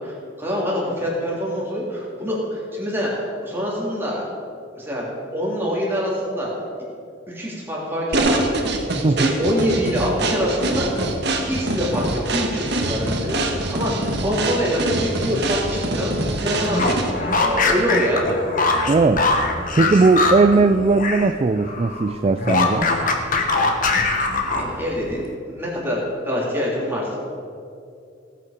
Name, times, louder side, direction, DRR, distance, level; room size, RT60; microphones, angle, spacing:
voice 1, 0.0-4.2 4.8-6.5 7.3-8.7 9.2-11.1 11.4-18.4 24.5-25.3 25.5-27.2, equal, 10° right, -5 dB, 3.3 m, -25 dB
sound 1, 8.1-17.3, right 2 dB, 55° right, 1.5 m, -24 dB
voice 2, 9.0-9.4 18.9-19.2 19.8-22.9, right 3 dB, 30° right, 9 dB, 0.3 m, -18 dB
sound 2, 16.6-21.3 21.6-24.9, left 3 dB, 40° left, 1.3 m, -22 dB
18.5 x 8.5 x 5.2 m, 2.5 s
head